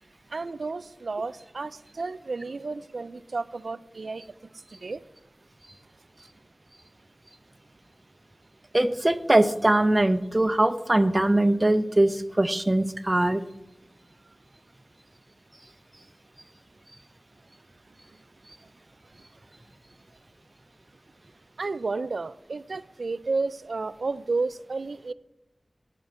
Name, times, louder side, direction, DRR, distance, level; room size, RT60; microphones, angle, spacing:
voice 1, 0.3-4.3 4.7-5.0 21.6-25.1, right 3 dB, 90° right, 17 dB, 0.3 m, -32 dB
voice 2, 8.7-13.4, right 1 dB, 25° right, 10 dB, 0.6 m, -22 dB
11.0 x 4.5 x 7.9 m, 0.92 s
wide cardioid pair, 65°, 0 cm